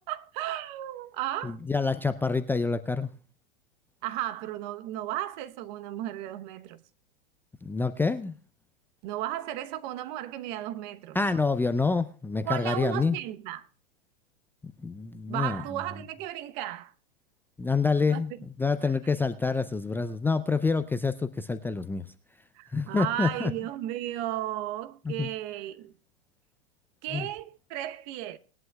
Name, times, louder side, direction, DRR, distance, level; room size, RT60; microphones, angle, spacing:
voice 1, 0.0-1.6 4.0-6.8 9.0-11.2 12.4-13.7 15.3-16.9 18.1-18.4 18.8-18.9 22.5-25.9 27.0-28.4, right 13 dB, 50° right, 1.0 m, -34 dB
voice 2, 1.4-3.1 7.6-8.3 11.1-13.2 14.8-15.6 17.6-18.3 18.6-22.0 22.7-23.5 25.1-25.3 27.1-27.3, left 4 dB, 5° left, 0.4 m, -27 dB
20.0 x 11.0 x 2.3 m
hypercardioid pair, 115°, 31 cm